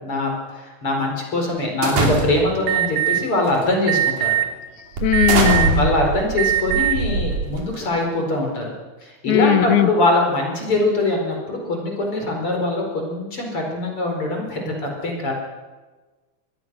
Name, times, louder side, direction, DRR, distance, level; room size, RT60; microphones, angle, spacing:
voice 1, 0.0-4.4 5.8-8.7 9.0-15.3, left 2 dB, 45° left, 1 dB, 5.5 m, -22 dB
sound 1, 1.8-2.6 3.4-3.7 4.2-4.3 5.0-7.9, right 3 dB, 80° right, 4.8 m, -23 dB
Alarm, 2.7-3.2 3.9-4.4 5.1-5.8 6.3-6.9, right 13 dB, 60° right, 3.2 m, -20 dB
voice 2, 5.0-5.9 9.3-9.9, left 11 dB, 75° left, 12 dB, 2.3 m, -18 dB
25.0 x 21.0 x 6.3 m, 1.3 s
omnidirectional pair, 3.5 m